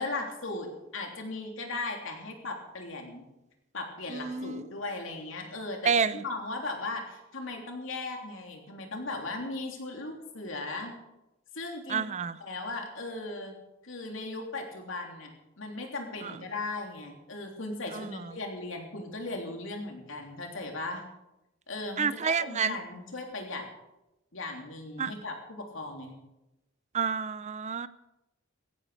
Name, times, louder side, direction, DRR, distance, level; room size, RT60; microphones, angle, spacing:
voice 1, 0.0-3.3 3.7-5.9 6.2-10.9 11.5-12.0 12.4-13.5 13.8-21.0 21.7-23.7 24.3-26.1, left 2 dB, 70° left, 2 dB, 3.3 m, -37 dB
voice 2, 4.1-4.8 5.8-6.2 11.9-12.4 16.2-16.4 17.9-18.4 22.0-22.8 25.0-25.1 26.9-27.9, right 6 dB, 35° right, 15 dB, 0.5 m, -29 dB
16.5 x 15.0 x 5.0 m, 0.93 s
head